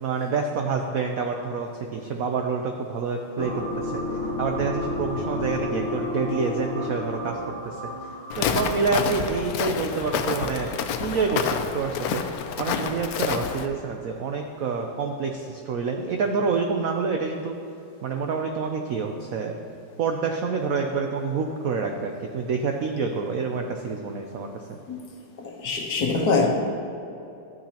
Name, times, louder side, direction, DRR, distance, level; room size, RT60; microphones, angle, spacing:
voice 1, 0.0-4.0 4.4-7.4 7.6-7.7 8.4-10.7 11.0-17.6 18.0-19.6 20.0-24.8, right 5 dB, 80° right, 3 dB, 0.7 m, -27 dB
sound 1, 3.4-9.0, left 2 dB, 30° right, 1.5 m, -31 dB
Walk footsteps, 8.3-13.7, left 7 dB, 80° left, 0.8 m, -28 dB
voice 2, 25.4-26.5, left 4 dB, 60° left, 0 dB, 1.5 m, -24 dB
12.0 x 8.8 x 2.9 m, 2.8 s
omnidirectional pair, 2.1 m